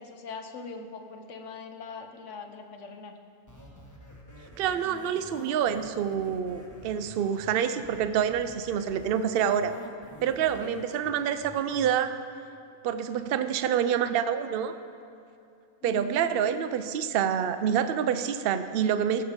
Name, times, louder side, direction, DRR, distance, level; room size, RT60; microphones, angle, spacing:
voice 1, 0.0-3.2 10.4-10.8 15.8-16.7, left 3 dB, 65° left, 5 dB, 1.2 m, -42 dB
sound 1, 3.5-11.9, equal, 15° left, 1.3 m, -48 dB
voice 2, 4.6-9.7 10.2-12.1 12.8-14.7 15.8-19.2, right 8 dB, 60° right, 10 dB, 0.6 m, -27 dB
15.5 x 6.8 x 5.1 m, 2.6 s
omnidirectional pair, 1.4 m